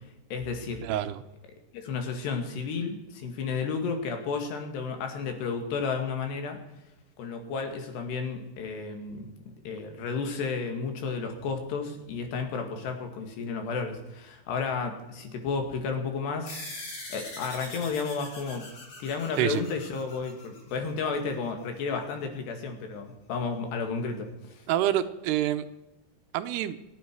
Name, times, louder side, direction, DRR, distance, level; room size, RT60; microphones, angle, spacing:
voice 1, 0.3-0.8 1.7-6.6 7.2-16.6 17.1-18.7 19.0-24.7, left 5 dB, 80° left, 5 dB, 4.2 m, -32 dB
voice 2, 0.8-1.2 19.4-19.6 24.7-25.7 26.3-26.8, right 12 dB, 85° right, 10 dB, 2.8 m, -27 dB
sound 1, 16.5-21.3, left 2 dB, 60° left, 7.4 m, -42 dB
28.5 x 9.6 x 4.7 m, 0.96 s
omnidirectional pair, 4.8 m